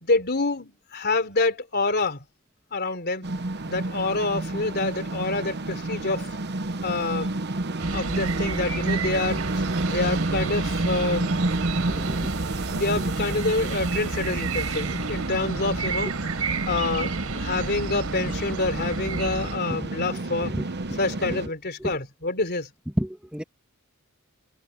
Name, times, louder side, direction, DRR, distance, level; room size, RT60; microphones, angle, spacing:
voice 1, 0.0-2.2 2.7-3.3 3.7-6.3 6.8-7.4 7.9-9.4 9.9-11.4 12.7-16.1 16.7-20.5 21.0-22.7, left 3 dB, 45° left, 3.5 m, -27 dB
sound 1, 3.2-21.5, right 2 dB, 50° right, 0.9 m, -29 dB
sound 2, 7.8-19.6, right 4 dB, 80° right, 4.3 m, -33 dB
voice 2, 12.0-12.3 13.0-13.1 20.4-20.7 21.3-21.4 21.8-21.9 23.0-23.4, equal, 5° right, 2.1 m, -30 dB
head